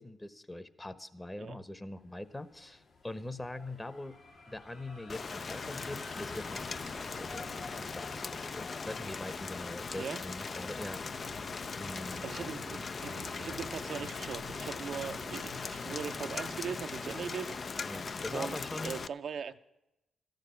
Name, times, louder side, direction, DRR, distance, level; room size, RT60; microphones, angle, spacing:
voice 1, 0.0-4.1 4.5-7.5 7.8-11.3 11.8-12.2 17.9-19.0, left 1 dB, 20° left, 12 dB, 1.1 m, -43 dB
sound 1, 2.2-12.1, left 3 dB, 70° left, 3.0 m, -51 dB
Rain, 5.1-19.1, left 4 dB, 45° left, 0.4 m, -39 dB
sound 2, 11.0-16.8, left 2 dB, 85° left, 2.7 m, -50 dB
voice 2, 12.2-17.6 18.3-19.6, right 6 dB, 60° right, 8 dB, 0.5 m, -40 dB
14.0 x 6.6 x 9.5 m, 0.91 s
hypercardioid pair, 40°, 0 cm